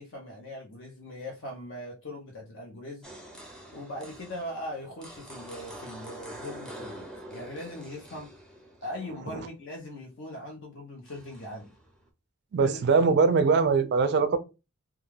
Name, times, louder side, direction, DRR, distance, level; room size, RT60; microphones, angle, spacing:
voice 1, 0.0-3.1 3.7-8.3 8.8-11.7 12.6-12.8, left 1 dB, 60° left, 0.6 m, -40 dB
sound 1, 3.0-9.4 11.1-12.1, right 1 dB, 5° left, 0.6 m, -46 dB
voice 2, 12.5-14.4, right 5 dB, 50° right, 0.3 m, -22 dB
2.3 x 2.2 x 3.1 m
head